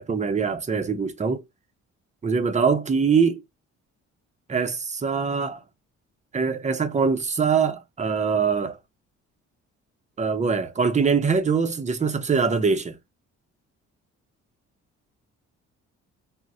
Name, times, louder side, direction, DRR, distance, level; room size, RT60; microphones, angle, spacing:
voice 1, 0.0-1.4 2.2-3.4 4.5-5.6 6.3-8.8 10.2-12.9, right 5 dB, 25° right, 0.6 m, -23 dB
4.0 x 2.1 x 2.4 m
cardioid pair, 90°, 30 cm